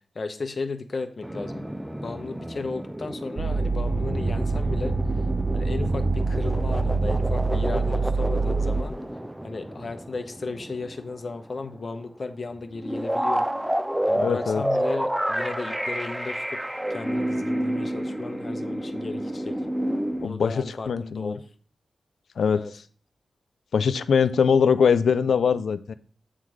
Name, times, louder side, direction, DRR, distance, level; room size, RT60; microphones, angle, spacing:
voice 1, 0.1-1.7 2.0-5.0 5.5-8.9 9.4-13.5 14.1-16.6 16.9-19.5 20.2-21.4 22.5-22.7, left 3 dB, 50° left, 7 dB, 0.9 m, -35 dB
sound 1, 1.2-11.4 11.7-11.8 12.7-20.3, right 1 dB, 10° right, 0.4 m, -30 dB
sound 2, 3.4-8.8, right 3 dB, 40° right, 0.7 m, -25 dB
voice 2, 14.1-14.6 20.2-21.4 22.4-22.8 23.7-25.9, left 6 dB, 80° left, 14 dB, 0.4 m, -22 dB
8.9 x 3.8 x 4.8 m, 0.43 s
cardioid pair, 70°, 0 cm